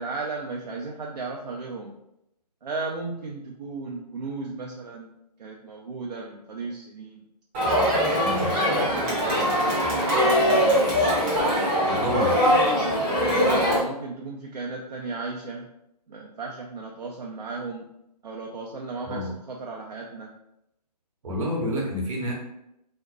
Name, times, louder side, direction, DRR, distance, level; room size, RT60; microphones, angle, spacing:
voice 1, 0.0-2.0 2.6-5.1 5.4-7.2 8.0-9.2 9.8-10.9 13.0-15.7 16.1-17.9 18.2-20.3, right 3 dB, 70° right, -1 dB, 0.4 m, -35 dB
Crowd, 7.5-13.8, equal, 15° right, 0.6 m, -22 dB
voice 2, 11.9-12.4 19.0-19.3 21.2-22.3, equal, 55° right, -3 dB, 0.9 m, -29 dB
2.5 x 2.1 x 2.3 m, 0.82 s
figure-of-eight pair, 135°, 21 cm